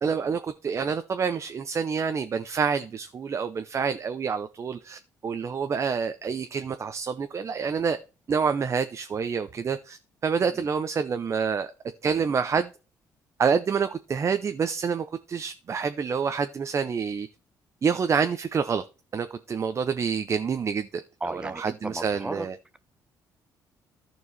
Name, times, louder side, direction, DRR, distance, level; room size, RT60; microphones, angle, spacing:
voice 1, 0.0-8.0 8.3-11.7 12.0-12.7 13.4-17.3 17.8-18.8 19.1-20.9 21.3-22.6, right 6 dB, 40° right, 0.6 m, -27 dB
voice 2, 21.2-22.5, right 1 dB, 10° right, 0.9 m, -35 dB
14.0 x 4.7 x 4.0 m
cardioid pair, 85°, 7 cm